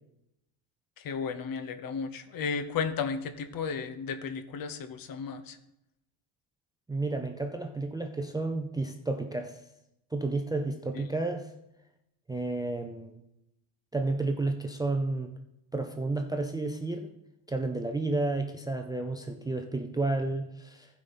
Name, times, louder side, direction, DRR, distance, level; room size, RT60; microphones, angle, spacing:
voice 1, 1.0-5.6 11.0-11.1, left 5 dB, 45° left, 10 dB, 0.9 m, -34 dB
voice 2, 6.9-9.6 10.1-11.5 12.3-13.2 13.9-15.3 15.7-17.1 17.5-20.9, right 2 dB, 10° right, 5 dB, 0.5 m, -31 dB
15.0 x 5.1 x 4.2 m, 0.85 s
cardioid pair, 120°, 49 cm